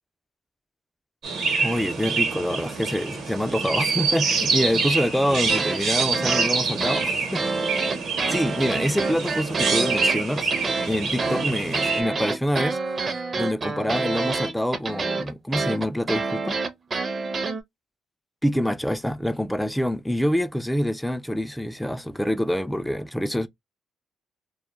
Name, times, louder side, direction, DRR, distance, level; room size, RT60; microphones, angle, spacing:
Chirp tweet, 1.2-12.0, right 4 dB, 70° right, 0.9 m, -26 dB
voice 1, 1.6-7.4 8.3-10.5 10.9-12.8 13.1-16.6 18.4-23.5, equal, 5° left, 0.3 m, -26 dB
sound 1, 5.5-17.6, right 3 dB, 40° right, 0.6 m, -27 dB
2.2 x 2.1 x 2.8 m
cardioid pair, 90°, 0 cm